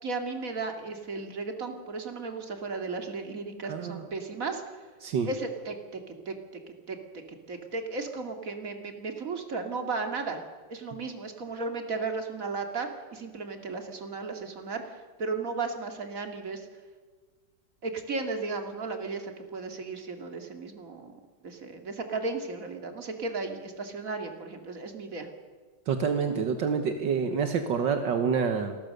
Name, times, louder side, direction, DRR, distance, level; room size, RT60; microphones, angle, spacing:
voice 1, 0.0-4.6 5.3-6.0 6.3-6.4 6.9-10.4 10.7-16.7 17.8-21.1 21.4-25.3, right 3 dB, 45° right, 4 dB, 2.7 m, -35 dB
voice 2, 3.7-4.0 5.0-5.3 25.9-28.8, right 6 dB, 75° right, 7 dB, 1.9 m, -27 dB
27.0 x 20.0 x 6.6 m, 1.5 s
omnidirectional pair, 2.0 m